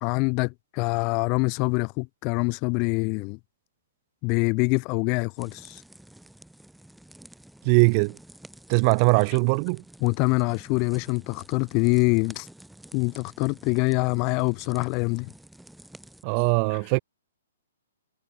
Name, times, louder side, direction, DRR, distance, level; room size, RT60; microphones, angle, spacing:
voice 1, 0.0-3.4 4.2-5.8 10.0-12.5 12.9-15.3 16.7-16.8, left 31 dB, 35° left, 0.4 m, -25 dB
sound 1, 5.4-16.2, right 1 dB, ahead, 3.1 m, -50 dB
voice 2, 7.6-8.2 8.7-9.8 16.2-17.0, right 40 dB or more, 35° right, 0.5 m, -21 dB
hypercardioid pair, 135°, 0 cm